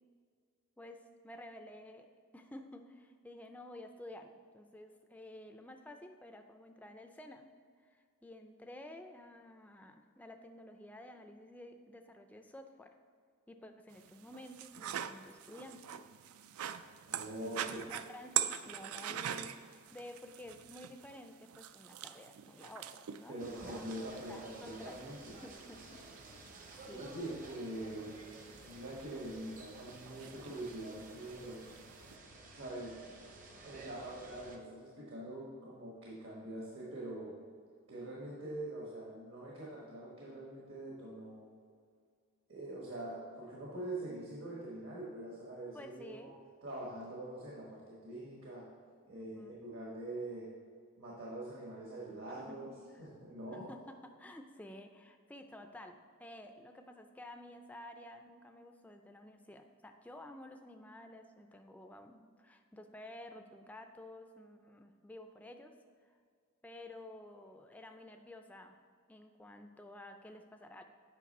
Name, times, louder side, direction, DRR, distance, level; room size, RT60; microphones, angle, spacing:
voice 1, 0.8-2.1 2.3-7.5 7.8-12.9 13.5-15.8 17.4-23.9 24.3-25.0 25.4-26.0 26.8-27.2 45.7-46.3 49.1-49.5 52.4-52.8 53.5-65.7 66.0-66.2 66.6-68.8 69.1-70.8, left 1 dB, 5° left, 5 dB, 0.3 m, -52 dB
sound 1, 13.9-32.2, right 10 dB, 85° right, 0.4 m, -44 dB
voice 2, 17.1-17.8 23.3-25.4 26.9-28.2 28.6-31.6 32.5-33.0 33.6-37.3 37.9-41.4 42.5-46.3 46.6-48.7 49.1-50.5 51.0-52.7 53.0-53.7, right 1 dB, 65° right, -4 dB, 1.4 m, -44 dB
sound 2, 23.4-34.6, right 2 dB, 40° right, 0.7 m, -53 dB
8.3 x 5.3 x 4.1 m, 2.1 s
head